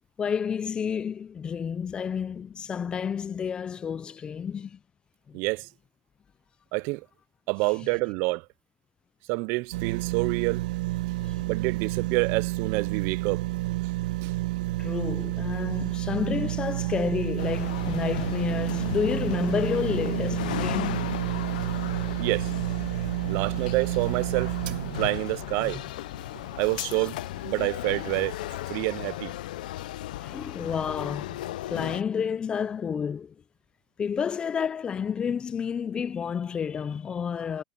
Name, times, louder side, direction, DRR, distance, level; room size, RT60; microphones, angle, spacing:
voice 1, 0.2-4.8 5.3-5.4 11.2-11.5 14.8-21.1 25.6-25.7 30.2-31.4 31.7-33.3 34.0-37.6, left 7 dB, 20° left, 0.6 m, -30 dB
voice 2, 5.3-5.7 6.7-7.1 7.5-8.5 9.3-10.6 11.5-13.4 14.2-14.3 22.2-22.5 23.3-24.6 25.0-25.8 26.6-27.2 27.4-28.4 28.7-29.3, right 26 dB, 55° right, 0.4 m, -27 dB
sound 1, 9.7-26.9 27.4-27.5, right 18 dB, 80° right, 1.5 m, -30 dB
sound 2, 17.4-32.0, left 15 dB, 80° left, 0.7 m, -36 dB
supercardioid pair, 135°, 4 cm